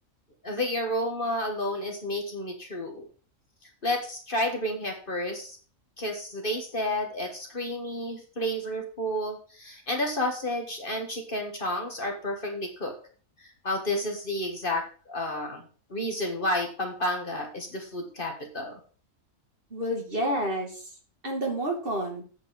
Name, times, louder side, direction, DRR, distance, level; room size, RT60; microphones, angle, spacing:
voice 1, 0.4-3.1 3.8-5.6 6.0-12.9 13.4-15.6 15.9-18.8, left 1 dB, 40° left, 3 dB, 1.8 m, -31 dB
voice 2, 19.7-20.8 21.2-22.2, right 1 dB, 40° right, 0 dB, 2.6 m, -29 dB
8.4 x 4.9 x 7.0 m, 0.40 s
omnidirectional pair, 1.4 m